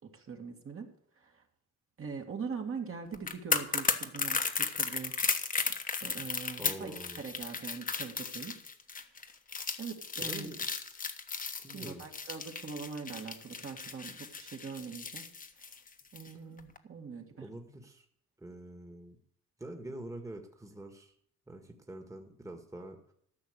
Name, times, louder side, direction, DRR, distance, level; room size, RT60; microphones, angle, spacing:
voice 1, 0.0-0.9 1.2-1.4 2.0-5.2 6.0-8.6 9.8-10.5 11.7-15.3 16.1-17.5, right 5 dB, 45° right, 2 dB, 2.1 m, -42 dB
sound 1, 3.1-16.3 16.6-16.8, left 4 dB, 30° left, 1.1 m, -35 dB
voice 2, 6.6-7.2 10.2-10.8 11.6-12.0 17.4-18.0 18.4-19.2 19.6-21.1 21.5-23.0, right 1 dB, 10° right, 4 dB, 1.6 m, -45 dB
13.5 x 5.9 x 8.1 m, 0.69 s
cardioid pair, 90°, 30 cm